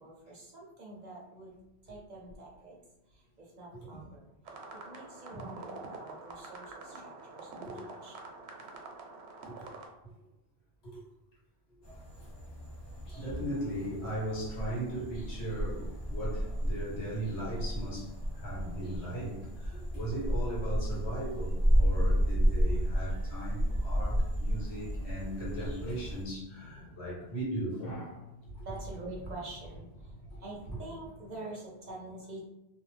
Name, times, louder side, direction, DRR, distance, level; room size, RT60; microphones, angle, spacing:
voice 1, 0.0-1.6 1.8-2.8 3.1-4.3 4.7-8.3 24.4-24.9 28.6-32.5, right 2 dB, 50° right, -3 dB, 0.6 m, -46 dB
sound 1, 4.5-9.9, right 3 dB, 80° right, 0.8 m, -46 dB
sound 2, 11.8-26.2, equal, 30° left, 0.6 m, -32 dB
voice 2, 13.1-28.7 30.7-30.8, right 1 dB, 80° left, -6 dB, 1.4 m, -38 dB
sound 3, 25.7-31.4, left 1 dB, 60° left, 0.8 m, -54 dB
2.5 x 2.1 x 3.2 m, 0.93 s
omnidirectional pair, 1.1 m